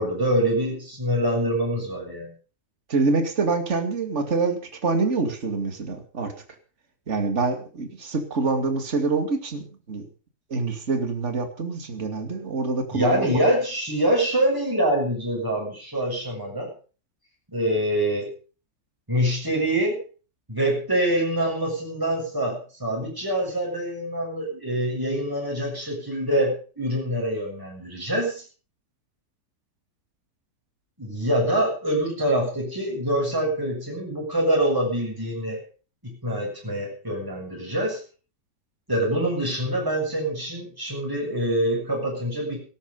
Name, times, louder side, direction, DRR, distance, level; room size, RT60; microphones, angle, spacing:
voice 1, 0.0-2.3 12.9-16.7 17.5-18.3 19.1-20.0 20.5-28.4 31.0-35.6 36.0-38.0 38.9-42.6, right 1 dB, 10° right, -2 dB, 7.2 m, -25 dB
voice 2, 2.9-6.3 7.1-9.6 9.9-10.1 10.5-13.4, right 3 dB, 45° right, 7 dB, 2.7 m, -26 dB
17.5 x 13.0 x 5.4 m, 0.38 s
omnidirectional pair, 1.8 m